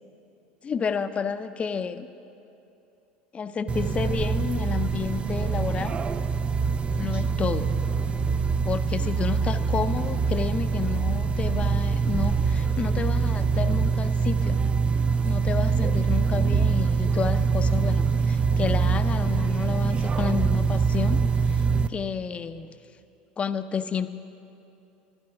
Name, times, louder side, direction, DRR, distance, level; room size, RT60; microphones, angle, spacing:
voice 1, 0.6-2.1 3.3-5.9 6.9-7.7 8.6-14.6 15.2-21.2 21.5-21.6 21.9-22.7 23.4-24.1, left 6 dB, 30° left, 11 dB, 0.5 m, -30 dB
sound 1, 3.7-21.9, right 5 dB, 25° right, 0.4 m, -24 dB
11.0 x 10.5 x 5.8 m, 2.8 s
supercardioid pair, 95°, 4 cm